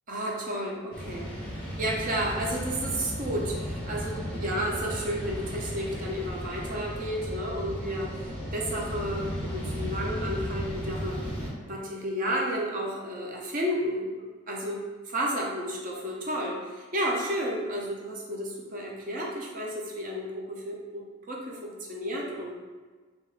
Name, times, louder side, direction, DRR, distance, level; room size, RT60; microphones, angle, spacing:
voice 1, 0.1-1.3 1.8-11.4 11.6-22.5, equal, 35° right, -1 dB, 0.5 m, -32 dB
sound 1, 0.9-11.5, equal, 20° left, 0.9 m, -35 dB
3.4 x 2.8 x 2.3 m, 1.4 s
head